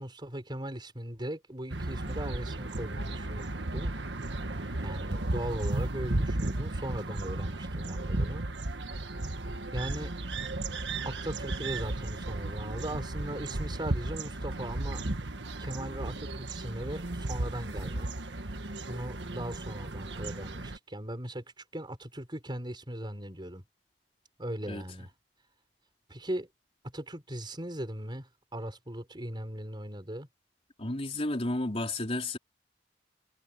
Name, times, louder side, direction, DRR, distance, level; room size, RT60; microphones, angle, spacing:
voice 1, 0.0-4.0 4.8-8.5 9.7-10.1 11.0-15.0 15.4-18.1 18.9-23.6 24.4-25.1 26.1-26.5 26.8-30.3, right 1 dB, 25° right, 5.3 m, -39 dB
sound 1, 1.7-20.8, right 2 dB, 80° right, 1.5 m, -34 dB
voice 2, 30.8-32.4, left 2 dB, 35° left, 3.9 m, -32 dB
head